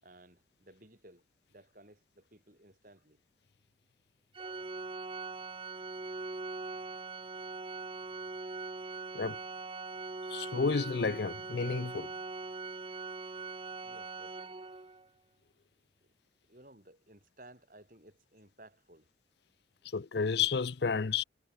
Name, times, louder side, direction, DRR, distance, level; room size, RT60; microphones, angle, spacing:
voice 1, 0.0-1.2 1.5-3.2 13.8-14.4 16.5-19.1 19.8-19.9, right 1 dB, 45° right, 6.1 m, -57 dB
Organ, 4.3-15.1, right 3 dB, 30° right, 0.7 m, -41 dB
voice 2, 10.3-12.1 19.9-21.2, left 5 dB, 65° left, 0.6 m, -31 dB
head